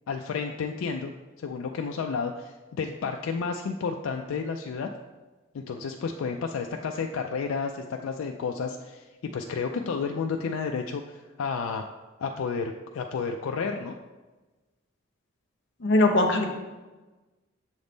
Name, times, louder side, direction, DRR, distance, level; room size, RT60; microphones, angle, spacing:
voice 1, 0.1-1.1 1.4-4.9 5.5-11.8 12.2-13.9, left 5 dB, 80° left, 4 dB, 0.3 m, -31 dB
voice 2, 15.8-16.5, left 2 dB, 60° left, 3 dB, 0.8 m, -20 dB
7.0 x 3.5 x 3.9 m, 1.2 s
head